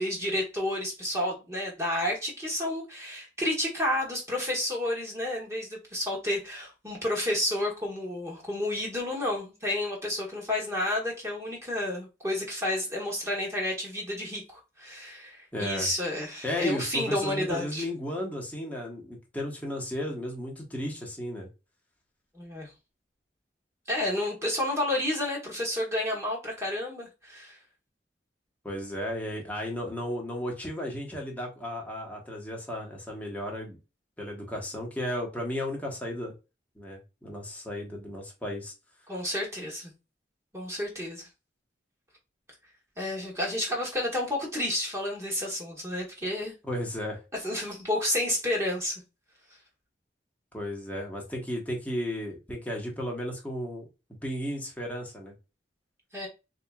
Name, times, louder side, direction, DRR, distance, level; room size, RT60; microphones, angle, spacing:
voice 1, 0.0-17.8 22.3-22.7 23.9-27.6 39.1-39.9 40.5-41.3 43.0-46.5 47.4-48.9 56.1-56.3, left 1 dB, 15° right, 1.4 m, -30 dB
voice 2, 15.5-15.9 16.4-21.5 28.6-33.8 34.2-36.3 36.8-38.7 46.6-47.2 50.5-53.8 54.2-55.3, left 1 dB, 10° left, 1.1 m, -34 dB
4.0 x 2.9 x 2.3 m
head